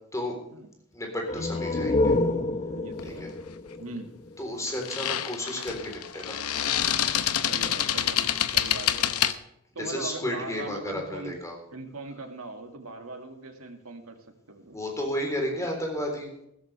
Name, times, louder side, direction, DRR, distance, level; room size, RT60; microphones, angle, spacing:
voice 1, 0.9-2.2 3.0-3.3 4.4-6.4 9.8-11.6 14.7-16.3, left 1 dB, 15° left, 1 dB, 3.9 m, -32 dB
sound 1, 1.2-4.8, left 2 dB, 30° left, 0.8 m, -28 dB
voice 2, 2.7-3.3 3.8-4.1 7.5-9.2 9.7-11.4 11.7-14.2 14.5-14.8, right 2 dB, 80° right, 5 dB, 2.1 m, -40 dB
sound 2, 3.0-3.2 4.7-9.3, left 10 dB, 90° left, 0.9 m, -27 dB
16.0 x 13.5 x 3.4 m, 0.80 s
head